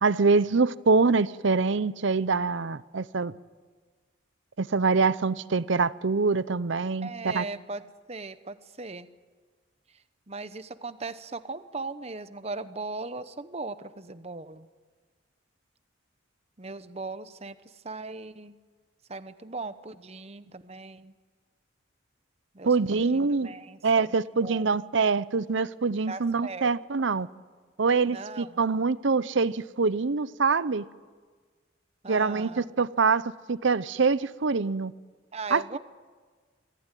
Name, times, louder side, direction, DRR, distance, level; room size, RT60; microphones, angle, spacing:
voice 1, 0.0-3.3 4.6-7.4 22.6-23.5 23.8-27.3 27.8-30.9 32.1-33.2 33.5-34.9 35.5-35.8, right 4 dB, 70° right, 0.7 m, -25 dB
voice 2, 7.0-9.1 9.9-14.7 16.6-18.5 19.1-21.1 22.5-24.8 26.1-26.7 28.1-28.5 32.0-32.7 35.3-35.8, right 3 dB, 30° right, 0.9 m, -39 dB
24.5 x 16.0 x 9.1 m
head